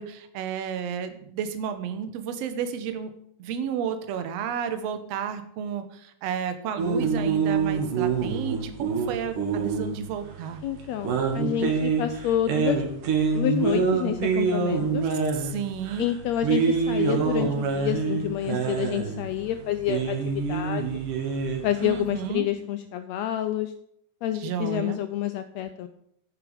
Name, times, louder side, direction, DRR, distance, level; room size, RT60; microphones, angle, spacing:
voice 1, 0.0-3.1 3.4-10.6 15.4-16.1 21.8-22.5 24.3-25.0, right 8 dB, 65° right, 9 dB, 1.9 m, -32 dB
sound 1, 6.8-22.3, right 5 dB, 85° right, 3.2 m, -26 dB
voice 2, 10.6-12.8 13.3-15.0 16.0-20.2 20.5-21.0 21.6-23.7 24.2-25.9, left 11 dB, 80° left, 10 dB, 1.5 m, -28 dB
9.8 x 9.7 x 5.1 m, 0.73 s
omnidirectional pair, 3.6 m